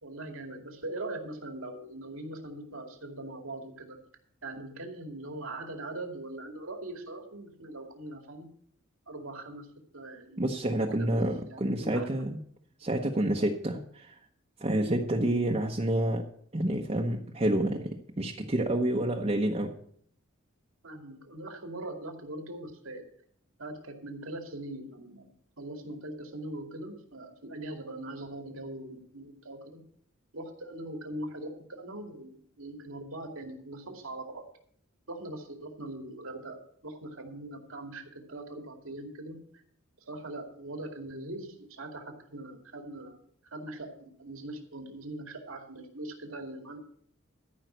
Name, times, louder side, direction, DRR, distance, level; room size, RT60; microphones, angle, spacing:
voice 1, 0.0-4.0 4.4-8.5 9.1-9.7 9.9-10.4 10.9-11.2 11.5-12.1 20.8-23.0 23.6-25.3 25.6-29.8 30.3-32.3 32.6-34.4 35.1-36.6 36.8-39.4 40.1-43.2 43.5-46.8, right 1 dB, 85° right, 4 dB, 2.4 m, -41 dB
voice 2, 10.4-12.4 12.8-14.1 14.6-16.2 16.5-19.7, right 1 dB, 30° right, 0 dB, 0.9 m, -28 dB
13.5 x 5.7 x 7.9 m, 0.63 s
head